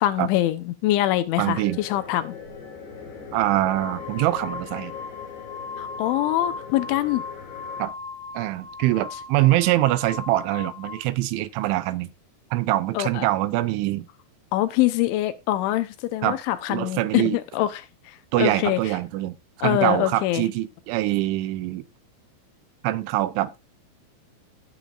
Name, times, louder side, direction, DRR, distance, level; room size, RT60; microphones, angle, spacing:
voice 1, 0.0-2.3 5.8-7.2 13.0-13.3 14.5-18.8 19.6-20.4, left 14 dB, 80° left, 3.2 m, -24 dB
voice 2, 1.4-1.8 3.3-4.9 7.8-7.9 8.3-12.1 12.5-14.1 16.2-16.4 16.7-17.4 18.3-19.4 19.6-21.9 22.8-23.6, right 16 dB, 85° right, 3.1 m, -24 dB
sound 1, 1.5-7.9, left 6 dB, 60° left, 5.3 m, -40 dB
sound 2, 2.4-2.6 3.4-11.1, left 4 dB, 35° left, 2.9 m, -38 dB
18.0 x 7.1 x 2.5 m
omnidirectional pair, 5.5 m